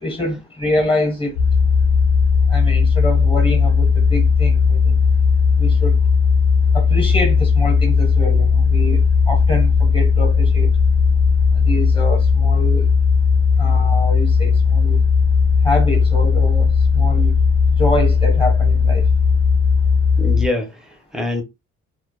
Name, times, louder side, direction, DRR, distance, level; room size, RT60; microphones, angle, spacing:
voice 1, 0.0-1.3 2.5-4.9 5.6-5.9 6.7-9.0 9.3-10.7 11.6-12.9 13.6-15.0 15.6-17.3 17.8-19.0, left 1 dB, 20° left, 0.8 m, -25 dB
sound 1, 1.4-20.5, left 5 dB, 60° left, 0.4 m, -16 dB
voice 2, 20.2-21.4, left 2 dB, ahead, 0.5 m, -25 dB
2.2 x 2.0 x 2.9 m
cardioid pair, 145°, 30 cm